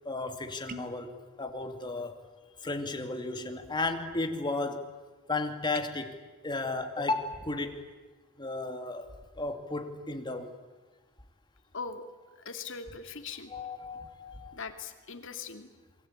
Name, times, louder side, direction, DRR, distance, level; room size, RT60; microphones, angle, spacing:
voice 1, 0.0-1.1 1.4-2.1 2.6-4.8 5.3-6.1 6.4-7.8 8.4-9.1 9.4-10.5 13.5-14.6, left 3 dB, 20° left, 5 dB, 2.5 m, -34 dB
sound 1, 0.7-1.1 5.6-5.9, right 2 dB, 40° right, 1.4 m, -43 dB
voice 2, 11.7-12.0 12.4-13.5 14.5-15.7, left 5 dB, 65° left, 7 dB, 2.5 m, -41 dB
28.0 x 23.0 x 8.9 m, 1.3 s
head